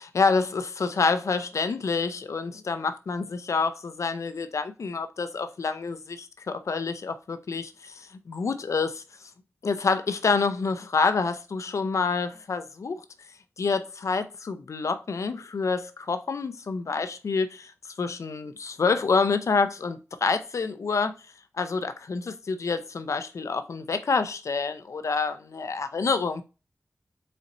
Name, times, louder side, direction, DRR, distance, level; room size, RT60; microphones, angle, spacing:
voice 1, 0.0-9.0 9.6-13.0 13.6-17.7 18.0-21.1 21.6-26.4, left 4 dB, 80° left, 0.5 m, -27 dB
4.2 x 4.2 x 2.5 m
wide cardioid pair, 95°, 5 cm